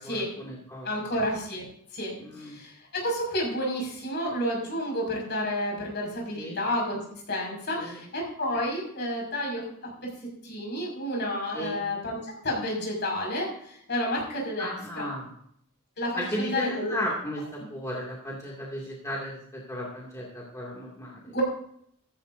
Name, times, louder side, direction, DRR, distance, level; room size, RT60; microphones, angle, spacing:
voice 1, 0.0-0.9 2.2-2.6 6.4-6.6 7.8-8.0 11.5-11.8 14.6-15.3 16.1-21.2, equal, 15° left, -4 dB, 2.5 m, -35 dB
voice 2, 0.8-7.0 7.3-9.6 10.4-15.1 16.0-17.0 21.3-21.4, left 1 dB, 50° left, -1 dB, 5.9 m, -30 dB
15.5 x 14.5 x 2.7 m, 0.67 s
head